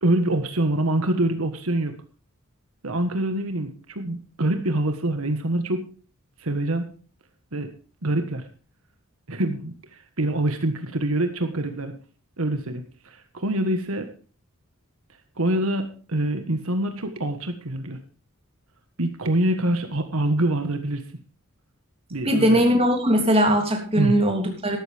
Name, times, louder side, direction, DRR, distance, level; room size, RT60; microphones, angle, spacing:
voice 1, 0.0-1.9 2.8-5.9 6.4-6.9 7.5-7.7 8.0-8.4 9.3-9.7 10.2-11.9 12.4-14.1 15.4-18.0 19.0-21.0 22.1-22.6 23.9-24.1, right 1 dB, 85° right, 7 dB, 1.5 m, -25 dB
voice 2, 22.2-24.8, equal, 30° right, 2 dB, 3.1 m, -20 dB
13.0 x 13.0 x 3.5 m, 0.37 s
head